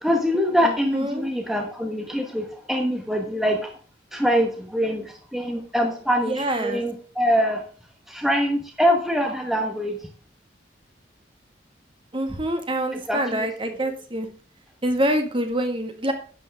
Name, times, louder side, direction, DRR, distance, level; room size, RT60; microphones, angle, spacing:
voice 1, 0.0-3.7 4.1-7.6 8.1-10.0 13.1-13.7, equal, ahead, 3 dB, 1.1 m, -24 dB
voice 2, 0.6-1.3 6.2-6.8 12.1-14.3 14.8-16.1, right 1 dB, 30° right, 6 dB, 1.7 m, -26 dB
11.5 x 8.0 x 3.5 m, 0.42 s
head